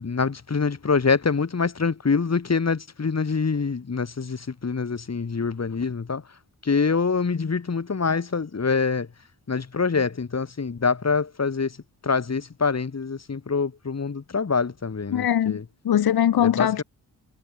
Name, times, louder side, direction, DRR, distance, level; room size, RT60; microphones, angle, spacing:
voice 1, 0.0-6.2 6.6-9.1 9.5-11.7 12.0-15.6 16.4-16.8, left 5 dB, 45° left, 6.9 m, -25 dB
voice 2, 15.1-15.6 15.8-16.8, left 10 dB, 85° left, 2.5 m, -21 dB
cardioid pair, 70°, 36 cm